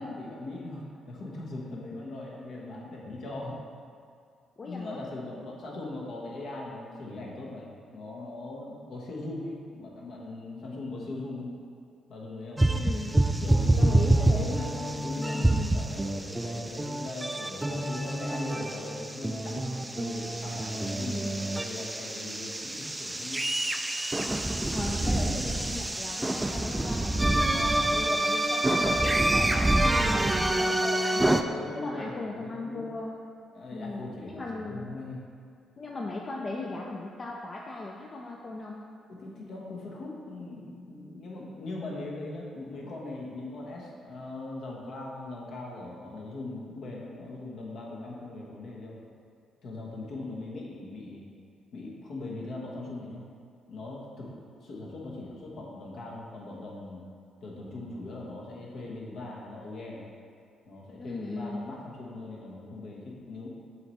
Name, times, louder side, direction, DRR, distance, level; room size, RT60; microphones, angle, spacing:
voice 1, 0.0-3.6 4.6-11.5 12.1-12.6 13.4-23.4 31.4-32.8 33.5-35.2 39.2-49.0 49.6-51.2 51.7-53.2 53.7-54.3 54.6-57.0 57.4-60.0 60.7-63.5, left 2 dB, 65° left, -3 dB, 1.1 m, -40 dB
voice 2, 4.6-5.0 12.7-13.2 13.7-14.6 15.2-15.8 21.0-21.3 24.7-31.4 31.7-33.2 33.7-34.9 35.8-38.8 61.0-61.7, left 2 dB, 45° left, -1 dB, 0.5 m, -38 dB
sound 1, 12.6-31.4, right 1 dB, 15° right, 0.4 m, -27 dB
7.1 x 3.2 x 4.1 m, 2.3 s
hypercardioid pair, 45°, 0 cm